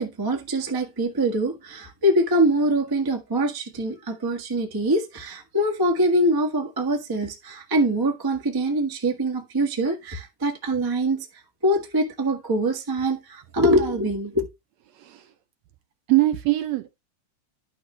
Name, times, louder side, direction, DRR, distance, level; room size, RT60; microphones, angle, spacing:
voice 1, 0.0-11.3 11.6-14.5, right 1 dB, 35° right, 0.3 m, -24 dB
voice 2, 15.0-15.3 16.1-17.0, right 17 dB, 70° right, 1.7 m, -22 dB
11.0 x 6.6 x 3.3 m
omnidirectional pair, 3.6 m